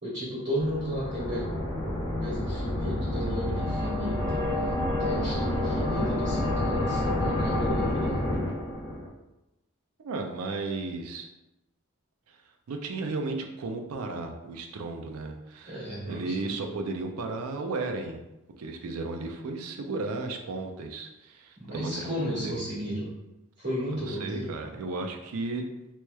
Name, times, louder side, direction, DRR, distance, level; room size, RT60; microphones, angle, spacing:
voice 1, 0.0-1.4 2.2-4.5 5.0-8.2 15.6-16.5 21.6-23.1 23.6-24.5, equal, 55° right, -11 dB, 1.4 m, -33 dB
sound 1, 0.6-9.1, left 1 dB, 20° left, 0.6 m, -29 dB
voice 2, 10.0-11.3 12.3-12.4 12.7-15.8 16.0-18.2 18.6-22.1 22.4-22.7 23.9-25.7, right 3 dB, 80° right, 4 dB, 0.4 m, -34 dB
3.0 x 3.0 x 2.2 m, 0.95 s
head